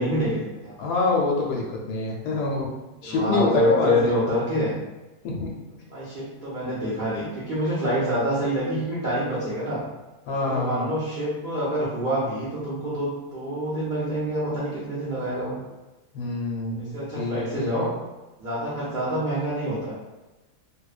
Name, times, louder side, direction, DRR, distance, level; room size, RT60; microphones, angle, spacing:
voice 1, 0.0-0.7 3.0-4.8 5.9-9.8 10.4-15.6 16.8-17.9 18.4-19.9, equal, 65° right, -10 dB, 0.4 m, -26 dB
voice 2, 0.8-2.7 3.0-4.1 5.2-5.5 10.3-10.9 16.1-17.9, left 3 dB, 80° left, -1 dB, 1.1 m, -26 dB
2.7 x 2.0 x 2.3 m, 1.1 s
omnidirectional pair, 1.7 m